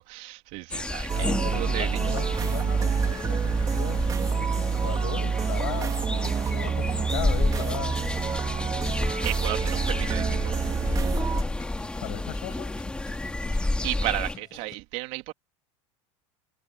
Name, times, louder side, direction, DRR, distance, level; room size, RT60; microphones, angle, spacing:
voice 1, 0.0-2.2 8.9-9.0 9.2-10.6 13.5-15.3, right 22 dB, 60° right, 3.2 m, -34 dB
sound 1, 0.7-14.4, left 2 dB, 5° left, 2.9 m, -31 dB
voice 2, 1.1-4.1 4.3-8.0 11.4-11.6 12.0-12.7, left 22 dB, 75° left, 6.3 m, -37 dB
sound 2, 1.1-11.4, right 6 dB, 25° right, 2.9 m, -28 dB
sound 3, 1.7-14.8, left 7 dB, 25° left, 6.8 m, -46 dB
supercardioid pair, 135°, 15 cm